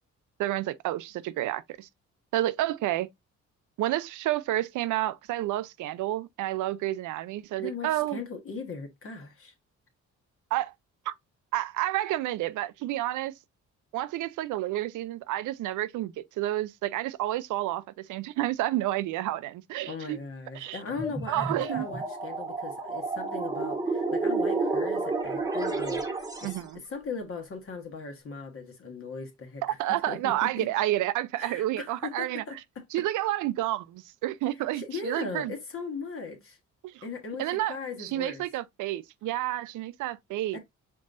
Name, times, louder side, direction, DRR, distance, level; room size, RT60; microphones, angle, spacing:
voice 1, 0.4-1.9 2.3-3.1 3.8-8.2 10.5-10.7 11.1-11.2 11.5-13.3 13.9-20.2 20.5-20.8 21.3-21.9 26.4-26.8 29.6-32.4 32.9-35.5 36.8-37.0 37.4-40.6, right 15 dB, 80° right, 0.5 m, -30 dB
voice 2, 7.6-9.5 19.9-30.7 31.4-32.8 34.7-36.6 37.0-38.4 40.5-40.6, left 4 dB, 45° left, 1.3 m, -39 dB
sound 1, 20.9-26.7, right 3 dB, 10° right, 1.1 m, -30 dB
5.4 x 3.8 x 2.5 m
cardioid pair, 90°, 30 cm